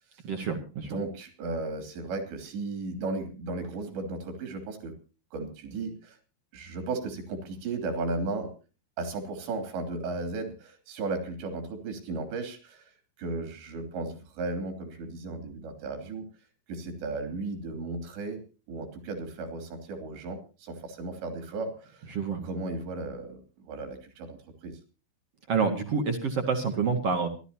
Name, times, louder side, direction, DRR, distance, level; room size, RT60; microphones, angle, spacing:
voice 1, 0.2-1.0 22.1-22.4 25.5-27.3, right 5 dB, 55° right, 5 dB, 1.8 m, -28 dB
voice 2, 0.8-4.9 5.3-6.2 6.5-8.5 9.0-12.8 13.2-16.3 16.7-18.4 18.7-22.0 22.4-24.8, right 3 dB, 70° right, 7 dB, 5.1 m, -35 dB
28.5 x 12.5 x 2.9 m, 0.34 s
omnidirectional pair, 5.3 m